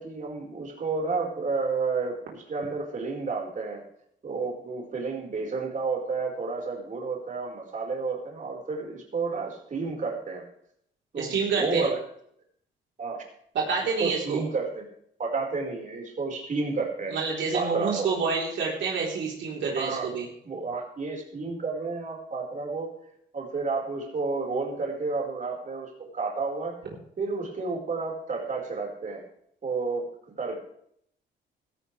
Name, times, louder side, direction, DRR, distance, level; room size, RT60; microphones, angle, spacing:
voice 1, 0.0-3.8 4.2-10.4 11.1-12.0 13.0-13.2 14.0-14.8 15.2-17.2 17.5-18.1 19.8-20.1 20.4-22.9 23.3-26.7 27.2-29.2 29.6-30.1 30.4-30.6, right 4 dB, 40° right, 1 dB, 4.9 m, -31 dB
voice 2, 11.2-11.9 13.5-14.4 17.1-20.3, right 5 dB, 70° right, -2 dB, 4.0 m, -28 dB
16.5 x 14.5 x 3.4 m, 0.69 s
cardioid pair, 90°, 20 cm